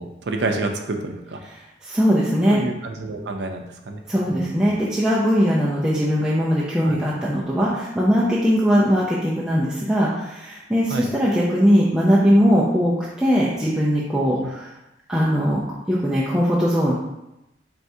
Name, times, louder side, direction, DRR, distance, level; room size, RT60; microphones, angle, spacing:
voice 1, 0.0-1.4 2.5-4.0 6.8-6.9 10.9-11.1 14.3-14.5, right 2 dB, 70° right, 4 dB, 0.5 m, -28 dB
voice 2, 1.8-2.6 4.1-14.7 15.1-15.6 15.9-16.9, equal, 5° right, -7 dB, 0.5 m, -20 dB
4.6 x 3.3 x 2.7 m, 0.91 s
head